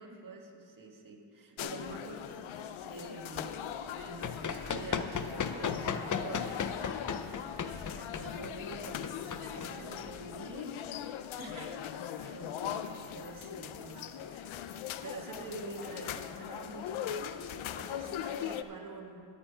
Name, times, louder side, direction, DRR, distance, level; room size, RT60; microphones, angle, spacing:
voice 1, 0.0-3.7 4.0-6.6 7.9-10.9 12.2-14.8 15.0-19.3, right 3 dB, 45° right, 1 dB, 1.7 m, -46 dB
voice 2, 1.5-2.1 7.4-8.2 11.4-11.9 12.2-12.3, right 3 dB, 70° right, 0 dB, 2.0 m, -52 dB
sound 1, 1.6-18.6, left 10 dB, 85° left, 0.6 m, -40 dB
Run, 3.9-10.3, left 6 dB, 40° left, 0.7 m, -36 dB
13.0 x 8.5 x 5.0 m, 2.7 s
cardioid pair, 80°, 46 cm